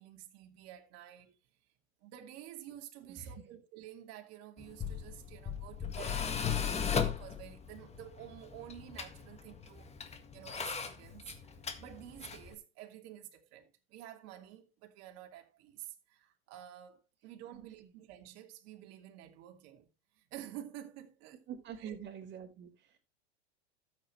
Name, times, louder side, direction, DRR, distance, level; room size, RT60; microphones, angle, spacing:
voice 1, 0.0-1.4 2.0-11.3 11.8-19.9 20.1-21.4 21.8-21.9, right 12 dB, 50° right, 2.7 m, -50 dB
voice 2, 3.1-3.4 17.5-17.9 21.5-23.0, right 8 dB, 35° right, 4.4 m, -46 dB
Tools, 4.6-12.5, left 7 dB, 20° left, 1.7 m, -37 dB
13.0 x 8.5 x 3.2 m
hypercardioid pair, 110°, 33 cm